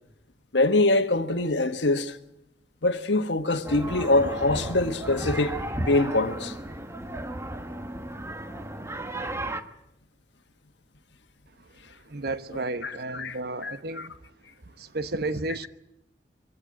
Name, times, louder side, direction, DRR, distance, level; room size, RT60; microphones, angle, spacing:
voice 1, 0.5-2.2 2.8-5.6 5.9-6.5 12.8-13.4 13.6-14.1, left 2 dB, 80° left, 1.5 m, -24 dB
sound 1, 3.6-9.6, right 1 dB, 15° right, 1.2 m, -34 dB
voice 2, 12.1-14.1 14.9-15.7, right 2 dB, 60° right, 1.1 m, -32 dB
23.5 x 16.5 x 9.3 m
head